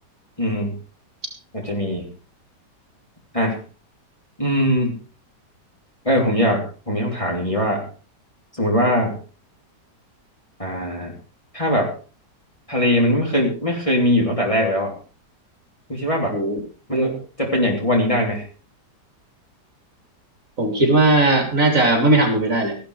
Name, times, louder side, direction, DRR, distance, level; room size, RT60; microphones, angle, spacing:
voice 1, 0.4-0.7 1.5-2.1 3.3-3.6 4.4-5.0 6.0-7.9 8.5-9.2 10.6-11.1 11.5-11.9 12.7-14.9 15.9-16.4 16.9-17.1 17.4-18.4, equal, 20° left, -1 dB, 3.3 m, -21 dB
voice 2, 20.6-22.8, right 2 dB, 50° right, 4 dB, 3.7 m, -18 dB
14.5 x 12.0 x 4.8 m, 0.37 s
omnidirectional pair, 1.9 m